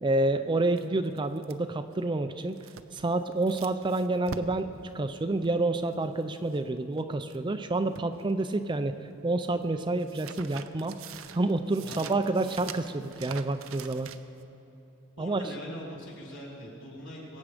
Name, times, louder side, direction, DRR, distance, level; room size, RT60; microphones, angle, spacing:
voice 1, 0.0-2.6 2.9-4.7 4.9-8.9 9.2-11.0 11.3-14.1 15.2-15.4, right 2 dB, 25° right, 9 dB, 0.4 m, -28 dB
sound 1, 0.8-7.4 7.7-8.9 9.1-14.4, right 6 dB, 70° right, 0.6 m, -45 dB
voice 2, 11.8-12.1 15.2-17.4, equal, 60° left, -4 dB, 3.3 m, -42 dB
22.0 x 8.5 x 5.0 m, 3.0 s
head